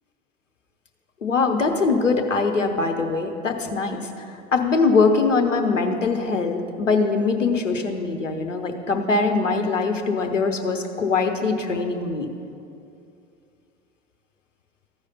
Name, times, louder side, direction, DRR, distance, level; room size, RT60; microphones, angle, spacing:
voice 1, 1.2-4.1 4.5-12.3, left 4 dB, 85° left, 5 dB, 0.9 m, -22 dB
14.0 x 4.9 x 5.6 m, 2.6 s
figure-of-eight pair, 85°, 36 cm